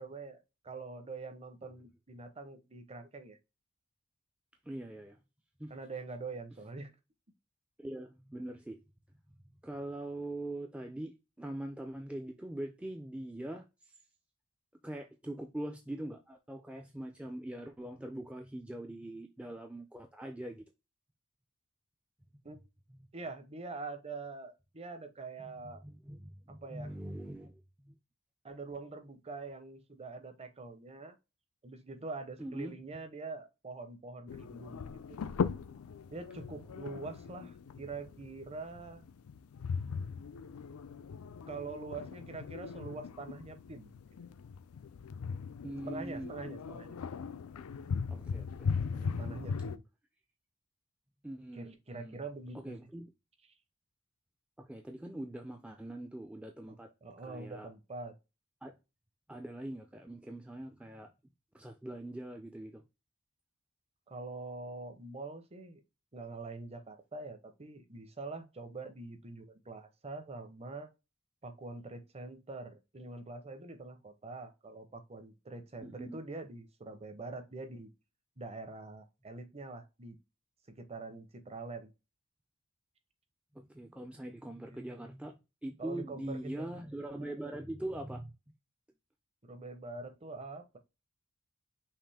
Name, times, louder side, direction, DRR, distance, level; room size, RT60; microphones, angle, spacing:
voice 1, 0.0-3.4 5.7-6.9 22.4-22.6 23.1-25.8 26.5-26.9 28.4-31.2 31.6-35.2 36.1-39.0 41.5-43.9 45.9-46.9 48.9-49.8 51.5-52.8 56.6-56.8 57.0-58.1 64.1-65.8 66.1-70.9 71.4-77.9 78.4-80.2 80.7-81.9 84.7-85.1 85.8-86.7 87.2-87.3 89.4-90.8, right 3 dB, 30° right, 0.7 m, -44 dB
voice 2, 4.7-5.2 5.6-5.7 7.8-8.8 9.3-9.4 9.6-13.9 14.8-20.6 22.5-22.6 22.9-23.0 25.4-28.0 32.4-32.7 45.6-46.3 48.1-48.7 51.2-52.2 52.6-53.1 54.6-56.9 57.2-57.7 58.6-58.7 59.3-61.1 61.5-62.8 75.8-76.2 83.5-88.3, right 1 dB, 5° right, 0.4 m, -42 dB
sound 1, 34.3-49.8, left 5 dB, 85° left, 0.4 m, -39 dB
5.7 x 2.5 x 3.4 m
head